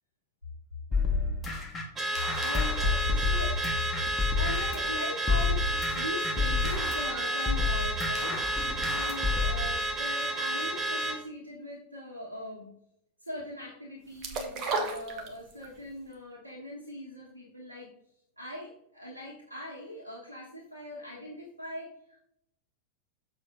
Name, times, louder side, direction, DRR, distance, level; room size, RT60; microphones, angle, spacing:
voice 1, 0.9-1.7 2.1-5.7 6.0-12.7 13.2-17.9 18.4-22.3, left 2 dB, 85° left, -4 dB, 1.5 m, -39 dB
sound 1, 0.9-4.9 5.3-9.6, left 4 dB, 15° left, 1.9 m, -30 dB
Car / Alarm, 2.0-11.2, right 1 dB, 20° right, 1.3 m, -31 dB
sound 2, 14.2-15.8 16.1-16.2, right 3 dB, 35° right, 1.6 m, -32 dB
7.0 x 6.7 x 3.7 m, 0.76 s
figure-of-eight pair, 90°, 0 cm